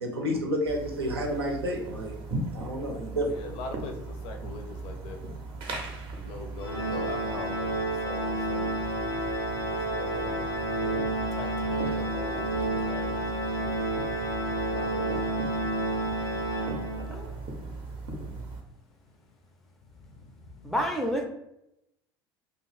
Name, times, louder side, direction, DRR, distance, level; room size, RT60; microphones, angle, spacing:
voice 1, 0.0-2.1 2.5-3.3, equal, 80° right, 1 dB, 0.6 m, -30 dB
sound 1, 0.7-18.6, right 2 dB, 40° right, 0.6 m, -39 dB
voice 2, 3.2-5.2 6.2-7.7 8.0-9.1 9.7-11.0 11.3-13.7 14.5-15.1 20.0-20.8, left 3 dB, 50° left, 4 dB, 0.5 m, -42 dB
Organ, 6.6-17.3, right 1 dB, 90° left, 0.7 m, -30 dB
voice 3, 20.6-21.2, equal, ahead, 3 dB, 0.5 m, -28 dB
2.4 x 2.4 x 3.2 m, 0.84 s
figure-of-eight pair, 70°, 13 cm